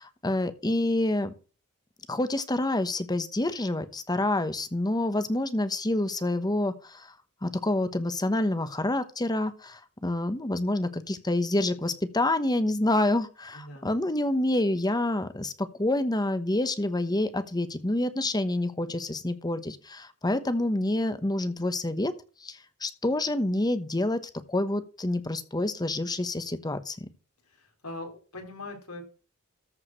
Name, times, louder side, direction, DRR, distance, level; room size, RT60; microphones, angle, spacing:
voice 1, 0.0-1.3 2.1-7.1 7.4-22.1 22.4-24.2 24.5-27.1, left 1 dB, 20° left, 11 dB, 1.0 m, -27 dB
voice 2, 13.5-13.9 27.8-29.0, left 2 dB, 90° left, 2 dB, 3.9 m, -40 dB
14.0 x 4.9 x 6.2 m, 0.36 s
head